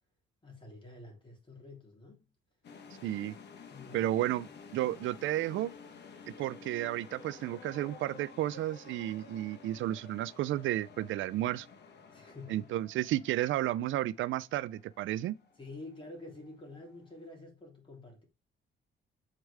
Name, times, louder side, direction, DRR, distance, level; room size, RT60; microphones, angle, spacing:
voice 1, 0.4-2.3 3.7-4.1 12.1-12.7 15.6-18.2, left 2 dB, 25° left, 3.4 m, -48 dB
sound 1, 2.6-17.3, left 5 dB, 60° left, 1.2 m, -52 dB
voice 2, 3.0-3.3 3.9-4.5 4.7-5.7 6.3-11.7 12.5-15.4, right 14 dB, 80° right, 0.5 m, -32 dB
7.6 x 4.7 x 3.4 m
cardioid pair, 90°, 20 cm